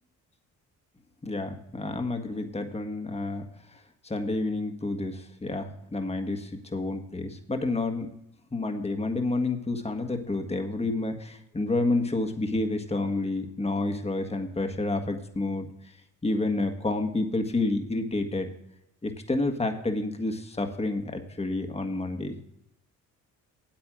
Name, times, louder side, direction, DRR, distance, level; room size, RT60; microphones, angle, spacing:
voice 1, 1.2-8.1 8.5-15.7 16.2-18.5 19.0-22.4, left 2 dB, 15° left, 5 dB, 1.5 m, -29 dB
8.8 x 8.6 x 6.2 m, 0.78 s
supercardioid pair, 70°, 41 cm